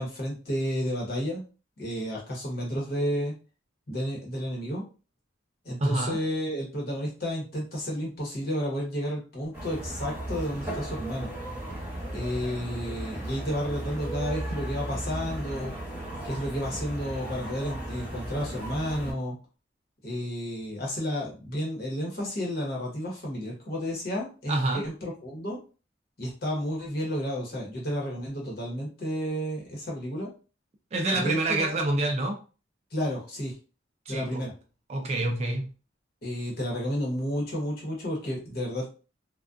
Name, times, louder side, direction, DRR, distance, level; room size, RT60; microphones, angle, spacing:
voice 1, 0.0-1.4 1.8-3.3 3.9-4.8 5.6-11.3 12.1-15.7 16.2-19.4 20.0-25.6 26.2-30.3 31.1-31.7 32.9-33.5 34.1-34.5 36.2-38.9, equal, 50° left, -3 dB, 0.9 m, -31 dB
voice 2, 5.8-6.2 24.5-24.8 30.9-32.4 34.1-34.4 34.9-35.7, right 2 dB, 35° right, 3 dB, 0.4 m, -27 dB
sound 1, 9.5-19.1, right 1 dB, 10° right, 0.9 m, -36 dB
2.3 x 2.2 x 2.4 m, 0.35 s
head